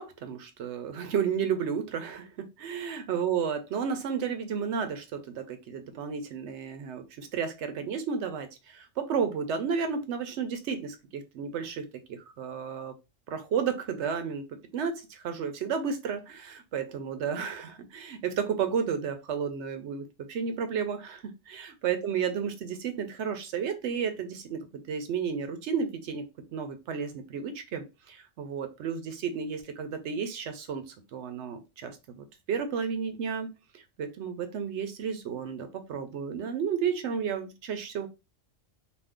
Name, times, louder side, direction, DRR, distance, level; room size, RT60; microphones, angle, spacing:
voice 1, 0.0-12.9 13.3-14.5 14.7-26.3 26.5-38.1, right 6 dB, 70° right, 8 dB, 0.9 m, -32 dB
2.5 x 2.5 x 3.5 m, 0.26 s
omnidirectional pair, 1.3 m